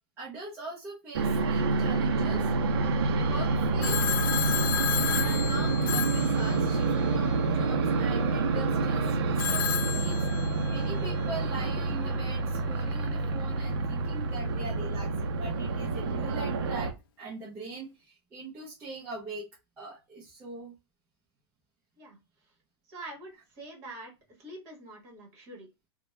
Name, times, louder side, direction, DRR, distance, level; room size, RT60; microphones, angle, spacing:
voice 1, 0.2-2.5 3.2-4.0 5.2-19.5 19.8-20.7, right 3 dB, 10° right, -7 dB, 0.5 m, -42 dB
sound 1, 1.1-16.9, right 3 dB, 60° right, 0.5 m, -28 dB
Telephone, 3.8-7.1 9.4-10.9, left 11 dB, 50° left, 0.4 m, -32 dB
voice 2, 22.9-24.1 24.4-25.9, right 2 dB, 30° right, 0 dB, 1.2 m, -45 dB
2.7 x 2.1 x 3.2 m, 0.24 s
supercardioid pair, 170°, 15 cm